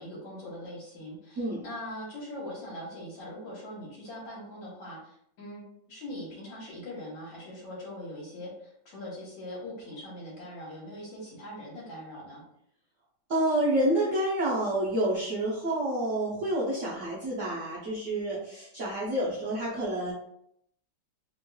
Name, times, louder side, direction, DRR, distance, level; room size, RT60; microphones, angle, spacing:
voice 1, 0.0-12.4, left 1 dB, 70° left, -5 dB, 1.8 m, -41 dB
voice 2, 13.3-20.1, right 1 dB, 60° right, -7 dB, 0.8 m, -28 dB
3.5 x 2.9 x 2.2 m, 0.73 s
omnidirectional pair, 2.1 m